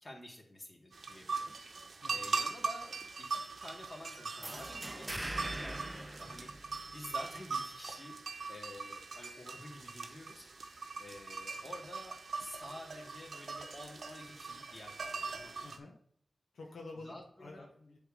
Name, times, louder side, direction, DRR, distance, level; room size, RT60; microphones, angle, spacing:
voice 1, 0.0-15.7 17.0-17.7, left 1 dB, 35° left, -1 dB, 2.2 m, -50 dB
sound 1, 0.9-15.8, right 4 dB, 80° right, 0.8 m, -41 dB
sound 2, 4.4-7.1, right 1 dB, 20° right, 0.5 m, -42 dB
voice 2, 15.6-16.0 16.5-18.0, left 2 dB, 90° left, 0 dB, 0.9 m, -49 dB
7.9 x 3.5 x 4.9 m, 0.64 s
cardioid pair, 45°, 0 cm